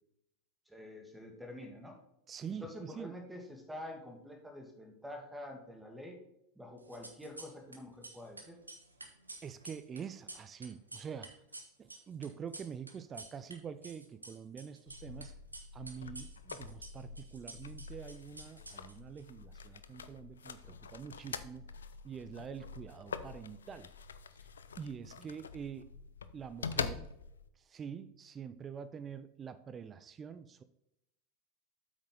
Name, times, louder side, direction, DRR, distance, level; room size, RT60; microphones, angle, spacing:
voice 1, 0.7-2.0 2.5-6.2 6.6-8.6, left 1 dB, 5° right, 4 dB, 2.2 m, -47 dB
voice 2, 2.3-3.1 9.4-11.3 11.8-15.3 15.7-21.7 22.0-23.9 24.8-25.9 26.3-27.1 27.7-30.6, right 7 dB, 25° right, 13 dB, 0.5 m, -45 dB
sound 1, 6.8-7.8 8.0-13.5 13.8-15.2 15.5-19.2, right 2 dB, 90° right, 1.2 m, -50 dB
sound 2, 14.9-27.5, left 6 dB, 75° left, 0.5 m, -45 dB
8.3 x 6.1 x 3.9 m, 0.82 s
figure-of-eight pair, 85°, 0 cm